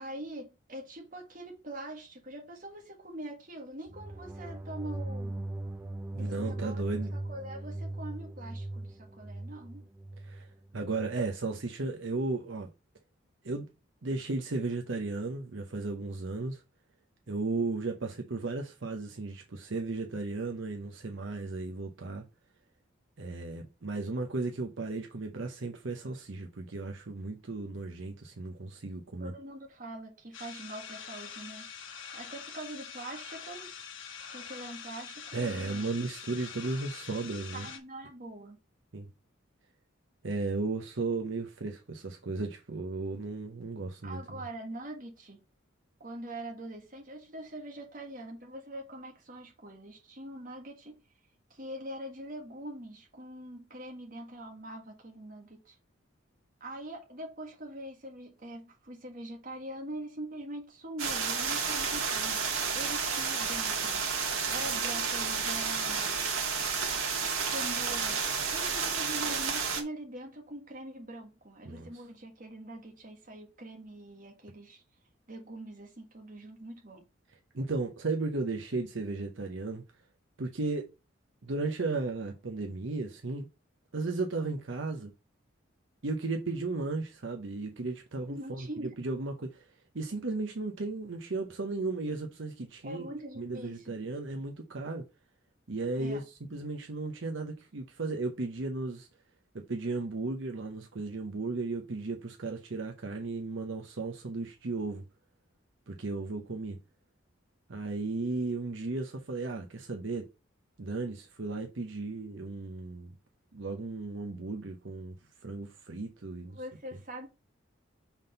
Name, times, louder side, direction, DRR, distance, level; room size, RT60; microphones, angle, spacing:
voice 1, 0.0-5.5 6.1-6.8 7.1-9.9 29.2-31.7 32.1-33.7 34.3-35.8 37.5-38.6 44.0-45.4 46.0-50.9 51.5-55.8 56.6-64.0 64.5-66.2 67.4-68.2 68.5-74.8 75.3-77.0 88.3-89.0 92.8-94.0 96.0-96.2 116.5-117.3, right 1 dB, 40° right, 1.5 m, -43 dB
sound 1, 3.9-11.1, right 2 dB, 10° right, 0.5 m, -39 dB
voice 2, 6.1-7.1 10.2-10.5 10.7-12.7 13.4-13.7 14.0-16.6 17.3-22.3 23.2-29.3 35.3-37.7 38.9-39.1 40.2-44.4 71.6-72.1 77.5-79.8 80.4-80.9 81.4-83.5 83.9-85.1 86.0-89.7 89.9-93.1 93.4-95.0 95.7-99.1 99.5-105.0 105.9-106.8 107.7-110.3 110.8-113.1 113.5-115.2 115.4-116.6, right 3 dB, 65° right, 0.8 m, -35 dB
sound 2, 30.3-37.8, left 7 dB, 75° left, 1.3 m, -45 dB
sound 3, 61.0-69.8, right 5 dB, 85° right, 1.5 m, -31 dB
5.8 x 3.6 x 5.3 m
head